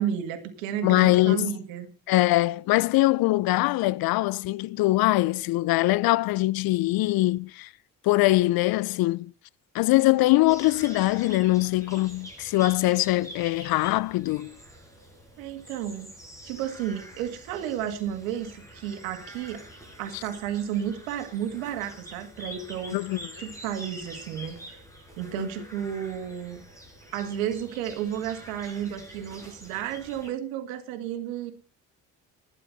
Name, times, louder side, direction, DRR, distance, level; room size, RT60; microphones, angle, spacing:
voice 1, 0.0-1.9 15.4-16.1 16.4-19.6 20.0-23.0 23.4-24.8 25.2-26.6 27.1-31.5, right 9 dB, 85° right, 1.9 m, -32 dB
voice 2, 0.8-1.5 2.1-7.7 8.0-9.3 9.7-14.5 22.9-23.2 25.4-25.5, left 18 dB, 65° left, 0.6 m, -22 dB
sound 1, 10.5-30.3, equal, 10° left, 6.9 m, -46 dB
11.5 x 11.5 x 5.3 m
hypercardioid pair, 60°, 40 cm